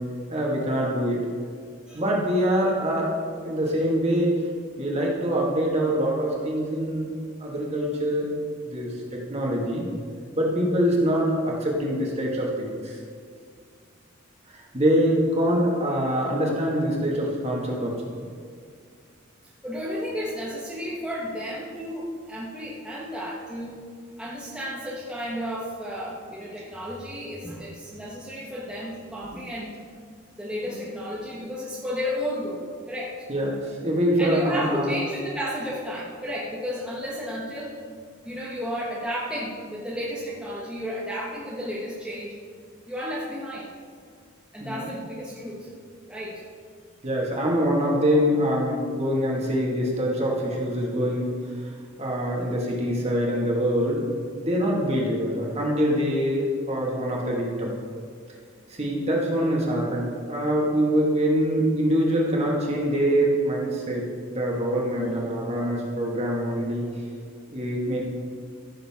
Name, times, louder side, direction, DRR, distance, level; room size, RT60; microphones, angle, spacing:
voice 1, 0.3-1.2 2.0-4.3 4.8-7.1 7.4-8.3 8.6-9.9 10.3-13.0 14.5-18.3 33.3-34.9 44.6-44.9 47.0-51.3 52.0-54.1 54.4-57.7 58.7-64.1 64.3-66.9 67.5-68.0, equal, 30° right, -3 dB, 1.9 m, -24 dB
voice 2, 19.6-23.8 24.2-29.7 30.4-33.1 34.2-37.7 38.2-42.3 42.9-43.7 44.5-45.7 46.1-46.4 65.0-65.2, equal, 5° right, -7 dB, 1.2 m, -32 dB
15.0 x 6.8 x 3.7 m, 2.1 s
head